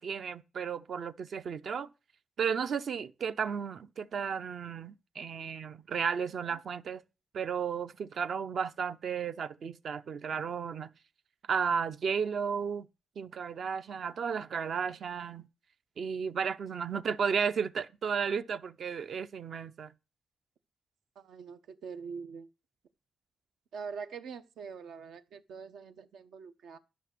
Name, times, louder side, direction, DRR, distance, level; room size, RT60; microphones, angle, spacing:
voice 1, 0.0-1.9 2.4-7.0 7.3-10.9 11.5-12.9 13.2-15.5 16.0-19.9, right 6 dB, 50° right, 0.6 m, -33 dB
voice 2, 21.1-22.5 23.7-26.8, right 5 dB, 80° right, 1.1 m, -44 dB
13.0 x 5.9 x 6.0 m
wide cardioid pair, 165°, 0 cm